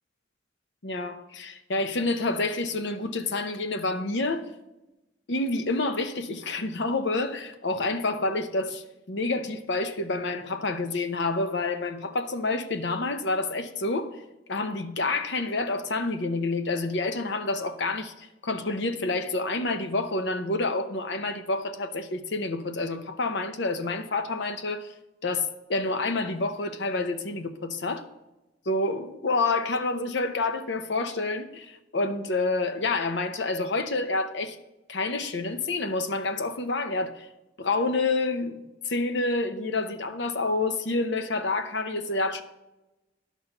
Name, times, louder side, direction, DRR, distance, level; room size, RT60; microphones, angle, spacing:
voice 1, 0.8-4.4 5.3-14.2 14.5-24.9 25.2-28.1 28.7-34.6 34.9-37.3 37.6-42.4, left 3 dB, 70° left, 0.8 m, -28 dB
11.0 x 6.2 x 5.5 m
head